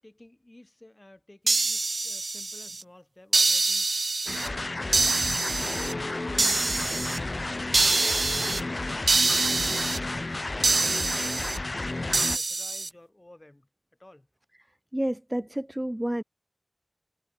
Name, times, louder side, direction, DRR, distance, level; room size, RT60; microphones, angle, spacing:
voice 1, 0.0-6.1 6.5-7.7 8.1-10.7 11.1-13.7 14.0-14.3, left 1 dB, 35° left, 6.4 m, -53 dB
sound 1, 1.5-2.8 3.3-4.5 4.9-5.9 6.4-7.2 7.7-8.6 9.1-10.0 10.6-11.6 12.1-12.9, right 3 dB, 85° right, 0.8 m, -25 dB
sound 2, 4.3-12.4, left 2 dB, 55° left, 0.4 m, -32 dB
voice 2, 14.9-16.2, right 1 dB, 20° right, 0.5 m, -29 dB
wide cardioid pair, 40°, 0 cm